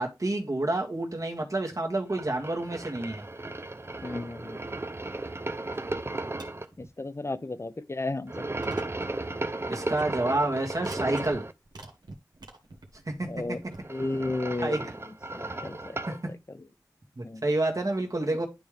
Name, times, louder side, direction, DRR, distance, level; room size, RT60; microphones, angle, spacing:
voice 1, 0.0-3.2 9.7-11.5 13.1-13.2 14.6-14.8 16.1-16.2 17.2-18.5, right 2 dB, 50° right, 1.8 m, -29 dB
sound 1, 2.1-6.6 8.3-11.5 13.6-16.2, right 2 dB, 35° right, 0.6 m, -35 dB
voice 2, 4.0-4.8 6.8-8.3 13.3-13.6 13.9-16.7 17.2-17.4, left 2 dB, 40° left, 0.7 m, -34 dB
sound 2, 5.7-6.0 6.3-6.9 7.3-7.4 8.1-8.2 8.6-9.1 9.4-9.5 9.9-10.2 10.7-11.4 11.7-13.8, right 2 dB, 85° right, 1.4 m, -46 dB
10.5 x 3.6 x 3.4 m
cardioid pair, 40°, 7 cm